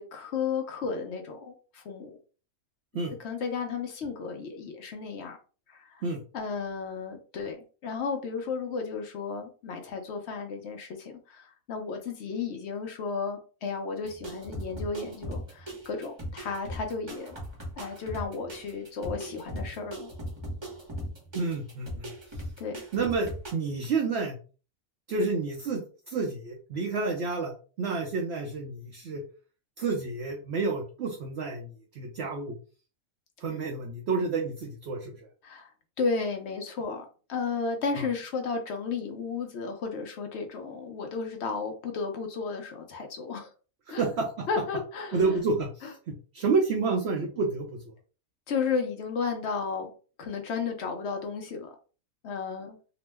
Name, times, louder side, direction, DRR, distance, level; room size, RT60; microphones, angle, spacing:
voice 1, 0.0-2.2 3.2-5.4 5.7-6.0 6.3-7.6 7.8-17.4 17.8-20.1 22.6-22.8 35.4-35.7 36.0-43.5 43.9-44.0 44.5-45.4 48.5-49.9 50.2-51.7 52.2-52.8, left 5 dB, 60° left, 5 dB, 0.7 m, -33 dB
sound 1, 14.0-23.5, equal, 25° right, 0.7 m, -39 dB
voice 2, 21.3-22.4 22.9-24.4 25.1-29.2 29.8-32.6 33.4-35.2 37.9-38.1 43.9-44.5 45.1-47.8, right 4 dB, 65° right, 1 dB, 0.7 m, -30 dB
2.9 x 2.0 x 3.3 m, 0.37 s
omnidirectional pair, 1.6 m